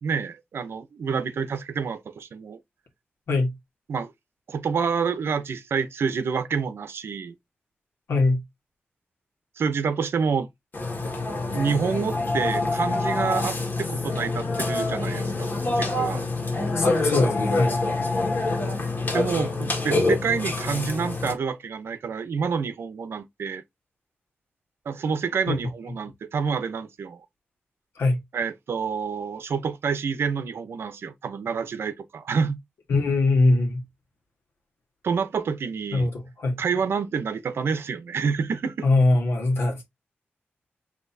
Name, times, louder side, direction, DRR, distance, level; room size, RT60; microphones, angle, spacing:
voice 1, 0.0-2.6 3.9-4.1 4.5-7.3 9.6-10.5 11.5-16.3 19.1-23.6 24.9-27.2 28.3-32.6 35.0-36.1 36.6-38.9, right 6 dB, 75° right, 0.7 m, -28 dB
voice 2, 8.1-8.4 16.7-17.8 25.5-25.6 27.9-28.2 32.9-33.8 35.9-36.6 38.8-39.8, left 2 dB, 90° left, 1.5 m, -22 dB
Burping eructation, 10.7-21.3, left 2 dB, 50° left, 1.6 m, -26 dB
6.0 x 3.0 x 2.7 m
wide cardioid pair, 120°, 4 cm